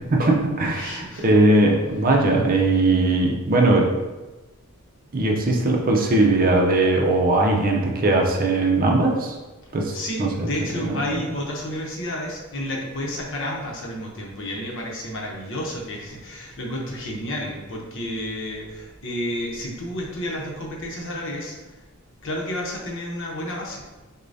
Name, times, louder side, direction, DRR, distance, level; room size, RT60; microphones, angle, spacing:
voice 1, 0.1-3.9 5.1-9.4 9.7-10.5 10.8-11.0, right 2 dB, 40° right, 0 dB, 0.5 m, -19 dB
voice 2, 0.7-1.3 9.9-21.6 22.2-23.9, left 1 dB, 60° left, -1 dB, 0.9 m, -31 dB
6.5 x 2.2 x 2.6 m, 1.2 s
head